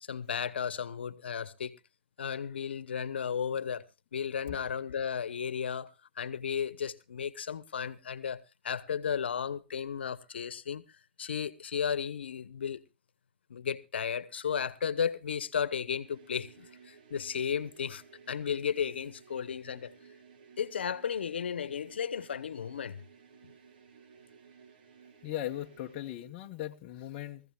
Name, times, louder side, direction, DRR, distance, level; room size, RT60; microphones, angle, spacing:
voice 1, 0.1-1.7 2.2-3.9 4.1-5.9 6.2-10.8 11.2-12.8 13.5-18.0 18.3-19.9 20.6-23.0, left 7 dB, 75° left, 0.9 m, -34 dB
sound 1, 15.9-26.3, right 6 dB, 50° right, 1.6 m, -57 dB
voice 2, 25.2-27.4, left 13 dB, 25° left, 0.8 m, -38 dB
23.0 x 15.0 x 2.2 m
hypercardioid pair, 155°, 6 cm